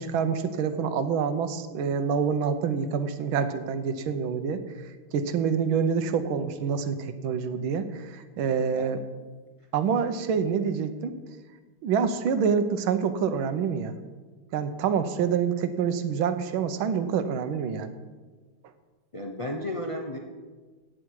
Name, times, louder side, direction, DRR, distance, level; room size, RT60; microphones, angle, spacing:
voice 1, 0.0-4.6 5.1-9.0 9.7-11.1 11.8-14.0 14.5-17.9, right 6 dB, 70° right, 10 dB, 1.6 m, -27 dB
voice 2, 19.1-20.2, left 1 dB, 40° left, 1 dB, 0.4 m, -33 dB
15.5 x 9.3 x 4.8 m, 1.4 s
omnidirectional pair, 2.3 m